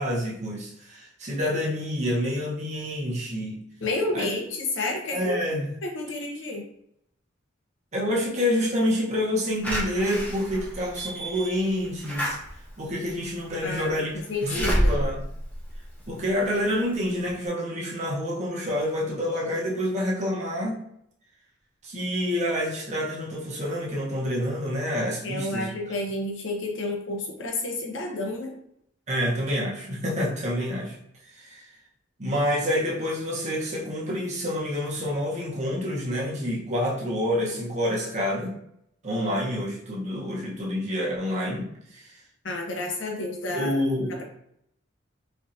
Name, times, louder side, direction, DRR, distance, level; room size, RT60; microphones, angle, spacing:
voice 1, 0.0-3.6 4.1-4.3 5.1-5.7 7.9-12.4 12.8-14.1 14.4-15.2 16.1-20.9 21.8-25.7 29.1-31.0 31.3-31.6 32.2-38.5 39.0-42.1 43.5-44.2, equal, 40° right, -3 dB, 0.9 m, -28 dB
voice 2, 3.8-5.4 5.8-6.6 13.6-15.0 25.2-28.5 42.4-43.7, left 2 dB, 80° left, 1 dB, 0.8 m, -30 dB
Slam / Alarm, 9.6-16.5 16.9-17.0 17.3-17.4, equal, 10° left, 0.7 m, -29 dB
4.4 x 2.6 x 2.6 m, 0.74 s
head